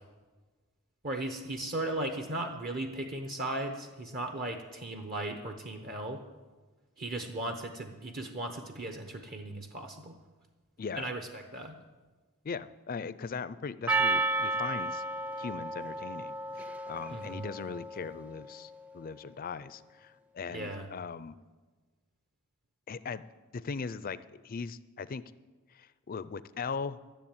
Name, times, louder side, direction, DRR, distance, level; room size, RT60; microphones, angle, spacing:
voice 1, 1.0-6.2 7.0-10.1 11.0-11.8 17.1-17.4 20.5-20.9, right 1 dB, 40° right, 5 dB, 0.9 m, -37 dB
voice 2, 10.8-11.1 12.4-15.0 15.4-21.3 22.9-23.2 23.5-24.2 24.4-25.2 25.7-27.0, left 5 dB, 40° left, 15 dB, 0.5 m, -39 dB
Percussion, 13.9-18.5, right 2 dB, 5° right, 0.5 m, -33 dB
13.5 x 7.5 x 8.8 m, 1.3 s
head